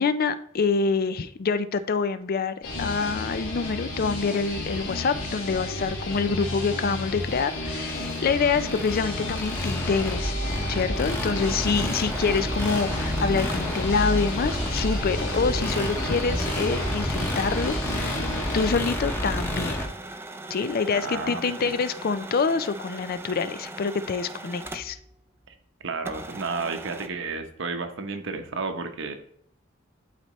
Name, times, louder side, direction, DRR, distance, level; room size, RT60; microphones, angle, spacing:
voice 1, 0.0-10.3 10.7-19.8 20.5-25.0, left 5 dB, 50° left, 13 dB, 0.4 m, -26 dB
sound 1, 2.6-18.7, left 2 dB, 75° left, 2.1 m, -32 dB
sound 2, 6.5-19.9, equal, 10° left, 1.0 m, -30 dB
sound 3, 11.4-25.1 25.4-25.5 26.0-27.1, right 2 dB, 10° right, 0.5 m, -40 dB
voice 2, 20.9-21.7 25.5-25.6 25.8-29.2, right 4 dB, 65° right, 7 dB, 0.9 m, -32 dB
11.5 x 4.2 x 3.1 m, 0.63 s
head